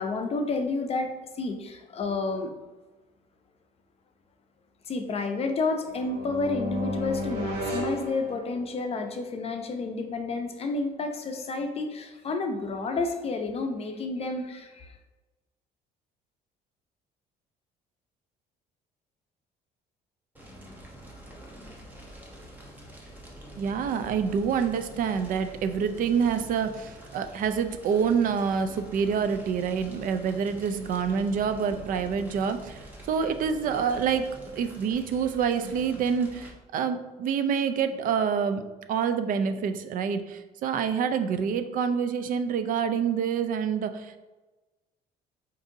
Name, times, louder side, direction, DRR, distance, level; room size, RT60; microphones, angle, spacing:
voice 1, 0.0-2.5 4.8-15.0, left 3 dB, 35° left, 5 dB, 0.5 m, -30 dB
sound 1, 5.9-8.9, equal, 75° right, 1.0 m, -33 dB
Fire, 20.3-36.5, right 1 dB, 10° right, 0.9 m, -46 dB
voice 2, 23.6-34.2 34.5-38.6 38.9-44.2, right 6 dB, 55° right, 9 dB, 0.4 m, -27 dB
4.9 x 2.6 x 2.6 m, 1.2 s
cardioid pair, 110°, 17 cm